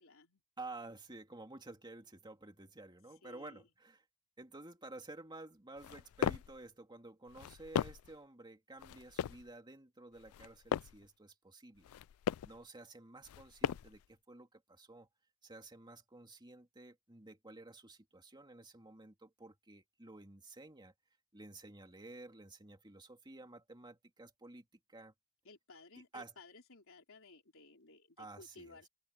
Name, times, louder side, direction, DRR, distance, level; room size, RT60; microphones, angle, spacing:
voice 1, 0.0-0.4 3.2-3.7 25.4-28.9, left 3 dB, 65° left, 4.1 m, -58 dB
voice 2, 0.6-4.0 4.4-11.9 12.4-15.1 15.4-20.9 21.3-25.1 26.1-26.3 28.2-28.8, right 2 dB, 20° right, 2.5 m, -52 dB
sound 1, 5.8-6.6 7.3-8.2 8.8-9.5 10.2-11.1 11.8-12.6 13.2-14.0, left 9 dB, 85° left, 0.3 m, -38 dB
head